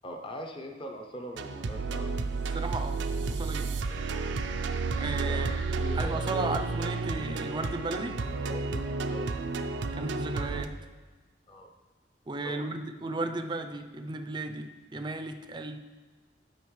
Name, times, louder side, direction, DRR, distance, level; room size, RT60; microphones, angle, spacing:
voice 1, 0.0-2.2 5.3-6.5 8.4-9.3 11.5-11.7 12.4-12.7, equal, 30° left, 3 dB, 0.7 m, -42 dB
sound 1, 1.4-10.7, right 4 dB, 85° right, 0.5 m, -31 dB
voice 2, 2.5-3.0 3.3-3.7 5.0-8.2 9.9-10.8 12.3-15.8, right 2 dB, 25° right, 7 dB, 0.4 m, -35 dB
11.5 x 5.4 x 3.2 m, 1.4 s
head